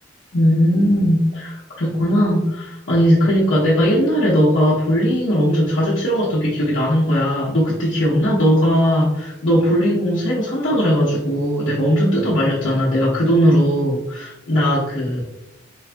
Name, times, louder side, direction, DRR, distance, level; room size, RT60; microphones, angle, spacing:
voice 1, 0.3-15.2, equal, 90° left, -8 dB, 0.8 m, -18 dB
3.9 x 2.2 x 2.5 m, 0.87 s
head